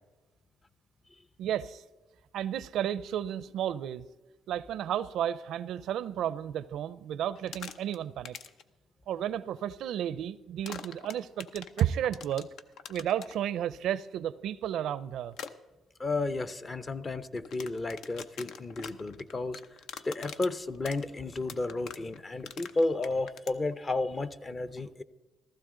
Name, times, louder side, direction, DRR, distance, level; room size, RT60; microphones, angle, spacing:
voice 1, 1.4-1.8 2.3-4.1 4.5-8.4 9.1-12.5 12.9-15.3, right 10 dB, 80° right, 0.5 m, -32 dB
sound 1, 7.4-8.0 8.3-8.6 10.7-13.3 15.3-15.5 17.4-23.6, left 7 dB, 80° left, 0.7 m, -43 dB
voice 2, 16.0-19.6 20.0-25.0, left 2 dB, 30° left, 0.7 m, -32 dB
15.5 x 14.5 x 3.8 m
cardioid pair, 90°, 0 cm